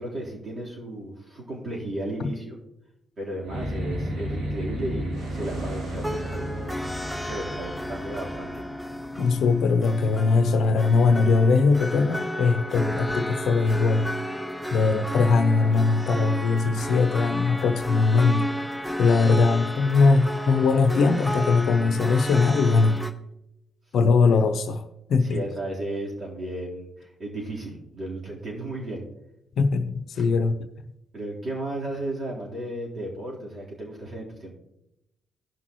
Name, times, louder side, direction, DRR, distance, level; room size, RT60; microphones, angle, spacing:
voice 1, 0.0-2.6 3.2-6.8 7.2-8.6 14.7-15.0 25.2-29.1 30.1-30.3 31.1-34.5, right 1 dB, 45° right, -3 dB, 3.8 m, -34 dB
sound 1, 3.4-10.0, equal, 70° right, 3.0 m, -34 dB
sound 2, 6.0-23.1, left 1 dB, 5° left, 1.0 m, -33 dB
voice 2, 9.2-14.1 14.7-18.5 19.0-23.0 23.9-24.8 25.1-25.4 29.6-30.6, left 4 dB, 65° left, 9 dB, 0.7 m, -21 dB
17.0 x 5.9 x 3.1 m, 0.84 s
hypercardioid pair, 50°, 0 cm